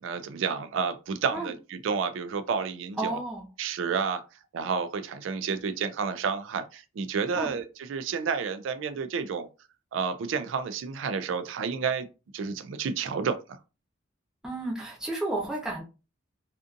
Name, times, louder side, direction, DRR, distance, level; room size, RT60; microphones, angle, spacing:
voice 1, 0.0-3.2 3.6-4.2 4.5-9.5 9.9-12.1 12.3-13.6, right 5 dB, 85° right, 0.3 m, -30 dB
voice 2, 3.0-3.4 7.3-7.5 14.4-15.8, right 2 dB, 5° right, 0.7 m, -32 dB
2.5 x 2.5 x 2.5 m
head